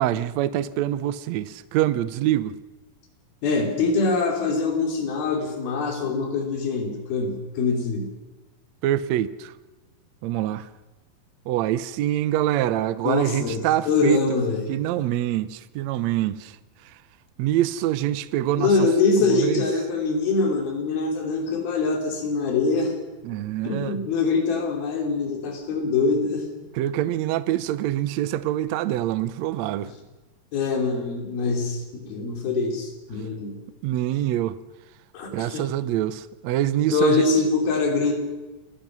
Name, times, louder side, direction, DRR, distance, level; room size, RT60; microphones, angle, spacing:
voice 1, 0.0-2.5 8.8-9.5 10.2-10.7 11.5-14.2 14.7-16.6 16.8-17.0 17.4-18.9 19.2-19.7 23.2-24.0 26.7-29.9 33.8-34.6 35.3-37.2, right 13 dB, 85° right, 1.5 m, -25 dB
voice 2, 3.4-8.1 13.1-14.7 18.6-22.9 23.6-26.5 30.5-33.6 35.1-35.7 36.9-38.1, left 4 dB, 85° left, 4.9 m, -24 dB
27.0 x 16.0 x 6.2 m
omnidirectional pair, 4.2 m